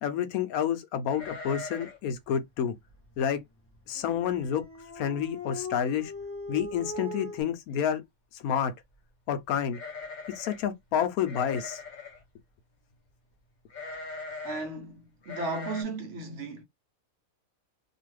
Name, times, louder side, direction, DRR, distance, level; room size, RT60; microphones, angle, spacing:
voice 1, 0.0-2.7 3.2-3.4 3.9-4.6 5.0-6.1 6.5-8.0 8.3-8.7 9.3-9.8 10.3-11.8, left 8 dB, 75° left, 1.1 m, -29 dB
sound 1, 1.1-2.1 2.3-2.4 2.9-3.2 3.7-3.8 4.1-4.6 5.0-5.1 6.2-6.3 6.6-7.0 9.7-10.7 11.3-12.2 13.7-14.7 15.2-15.8, left 3 dB, 40° left, 0.8 m, -41 dB
Dog, 4.0-7.4, left 2 dB, 15° left, 0.4 m, -40 dB
voice 2, 14.4-16.6, right 3 dB, 60° right, 1.0 m, -35 dB
2.8 x 2.4 x 3.1 m
omnidirectional pair, 1.6 m